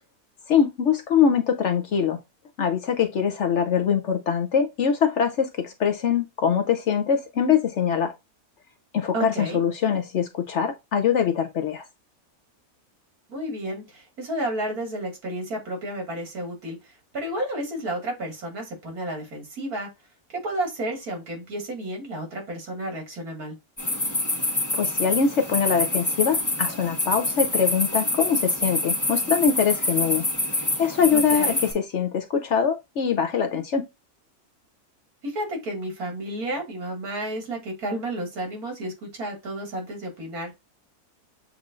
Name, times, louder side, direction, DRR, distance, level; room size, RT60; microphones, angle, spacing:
voice 1, 0.5-2.2 2.6-8.1 8.9-11.8 24.7-30.3 30.6-33.9, left 7 dB, 60° left, 0.8 m, -23 dB
voice 2, 9.1-9.6 13.3-19.9 20.4-23.6 31.1-31.6 35.2-40.5, right 1 dB, 75° right, 2.5 m, -31 dB
sound 1, 23.8-31.7, left 2 dB, 15° left, 0.9 m, -26 dB
7.4 x 2.6 x 2.4 m
omnidirectional pair, 1.6 m